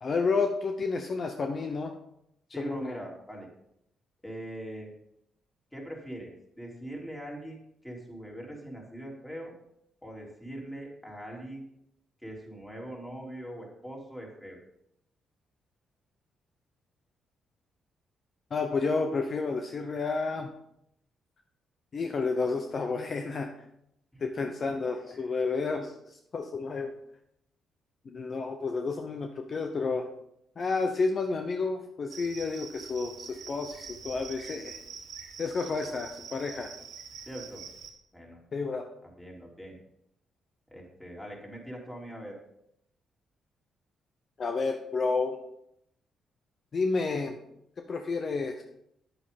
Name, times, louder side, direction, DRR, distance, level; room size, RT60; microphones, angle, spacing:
voice 1, 0.0-1.9 2.6-3.0 18.5-20.5 21.9-23.5 24.2-26.9 28.1-30.1 30.6-34.8 35.4-36.7 38.5-38.8 44.4-45.4 46.7-47.4 47.9-48.6, left 4 dB, 50° left, 5 dB, 0.8 m, -30 dB
voice 2, 2.5-3.5 4.2-4.9 5.7-6.3 6.6-9.5 10.0-11.6 12.2-14.6 24.1-24.2 24.6-24.7 25.1-25.3 37.3-37.7 38.1-38.4 39.0-39.8 40.7-42.3, right 1 dB, 10° left, -2 dB, 3.2 m, -42 dB
Cricket, 32.1-37.9, right 6 dB, 65° right, 1.5 m, -45 dB
8.6 x 8.0 x 3.8 m, 0.76 s
supercardioid pair, 65°, 0 cm